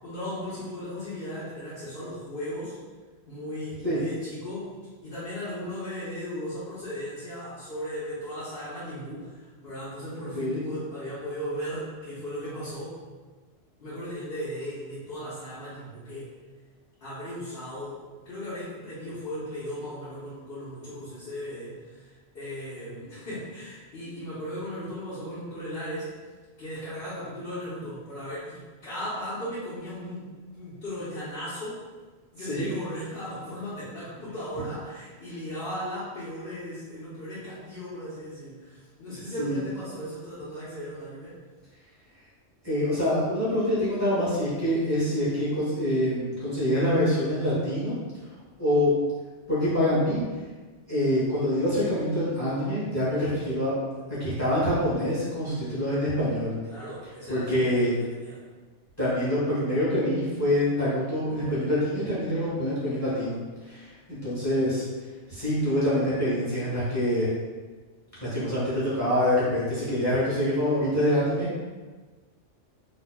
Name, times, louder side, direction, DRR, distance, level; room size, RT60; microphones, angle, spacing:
voice 1, 0.0-2.8 3.3-13.0 13.8-16.3 17.0-26.2 26.6-31.8 32.3-41.4 56.6-58.4, equal, 60° left, -12 dB, 1.2 m, -37 dB
voice 2, 42.6-47.9 48.6-49.0 49.5-50.2 50.9-53.7 54.2-56.6 57.3-57.9 59.0-63.4 63.6-63.8 64.1-64.8 65.3-67.3 68.2-71.6, left 1 dB, 15° left, -10 dB, 1.1 m, -25 dB
4.1 x 2.7 x 2.2 m, 1.3 s
omnidirectional pair, 1.2 m